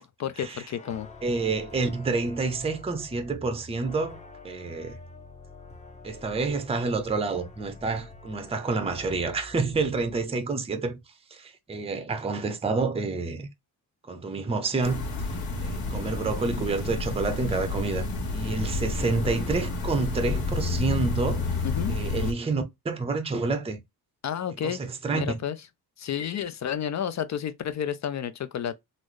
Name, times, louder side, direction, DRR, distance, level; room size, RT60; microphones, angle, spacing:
voice 1, 0.0-1.1 21.6-22.0 24.2-24.8 25.1-25.6 26.0-28.7, left 9 dB, 45° left, 0.4 m, -31 dB
sound 1, 0.8-10.2, left 2 dB, 20° left, 0.7 m, -47 dB
voice 2, 1.2-4.2 4.4-5.0 6.0-11.0 11.3-13.5 14.1-15.0 15.6-18.1 18.3-21.4 21.9-23.8 24.6-25.2, right 3 dB, 15° right, 0.6 m, -28 dB
sound 2, 14.8-22.3, left 3 dB, 70° left, 1.4 m, -30 dB
3.9 x 2.0 x 3.1 m
cardioid pair, 130°, 39 cm